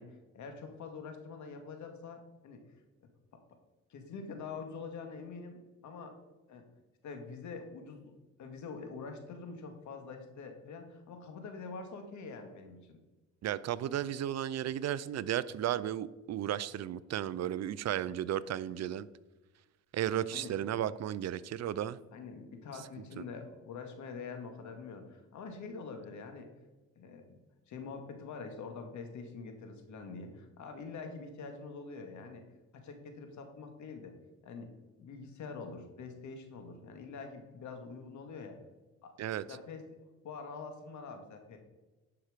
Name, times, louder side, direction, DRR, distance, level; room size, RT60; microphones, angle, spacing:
voice 1, 0.0-2.6 3.9-6.2 6.5-6.6 7.0-8.1 8.4-13.0 20.3-20.6 22.1-26.5 27.0-27.4 27.7-32.4 32.7-34.1 34.4-34.7 35.0-38.6 39.0-39.1 39.5-39.8 40.2-41.6, left 4 dB, 70° left, 2.0 m, -45 dB
voice 2, 13.4-19.1 19.9-22.0 39.2-39.4, right 11 dB, 60° right, 0.5 m, -34 dB
11.0 x 5.9 x 5.0 m
cardioid pair, 90°, 30 cm